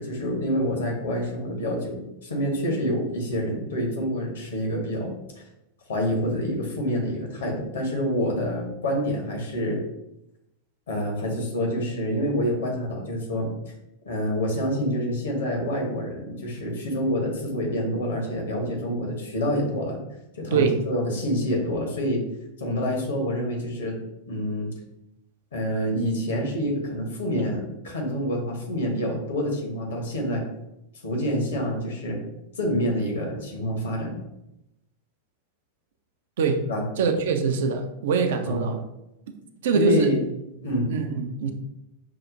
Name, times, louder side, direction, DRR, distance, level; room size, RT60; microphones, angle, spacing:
voice 1, 0.0-5.4 5.9-9.8 10.9-13.5 14.0-20.0 20.4-22.2 22.6-24.0 24.3-24.7 25.5-30.4 31.0-32.2 32.6-34.2 36.7-36.9 38.5-38.7 39.7-40.2 40.6-40.9, equal, 65° left, 1 dB, 1.0 m, -27 dB
voice 2, 37.0-38.8 39.6-40.1 40.9-41.5, right 4 dB, 60° right, 6 dB, 0.4 m, -23 dB
5.7 x 2.0 x 2.6 m, 0.88 s
figure-of-eight pair, 90°, 0 cm